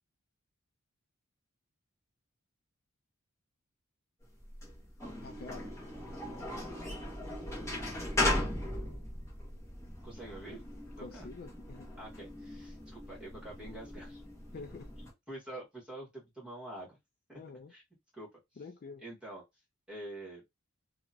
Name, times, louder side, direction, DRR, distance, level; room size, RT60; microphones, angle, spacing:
sound 1, 4.4-15.1, left 1 dB, 15° left, 1.0 m, -38 dB
voice 1, 5.2-5.7 11.0-11.9 14.5-14.9 17.3-17.7 18.6-19.0, left 4 dB, 45° left, 0.3 m, -47 dB
voice 2, 10.0-10.6 11.0-11.3 12.0-14.2 15.3-17.0 17.3-17.4 17.7-17.8 18.1-18.6 19.0-19.4 19.9-20.4, right 1 dB, 5° right, 1.4 m, -46 dB
2.8 x 2.3 x 2.6 m
head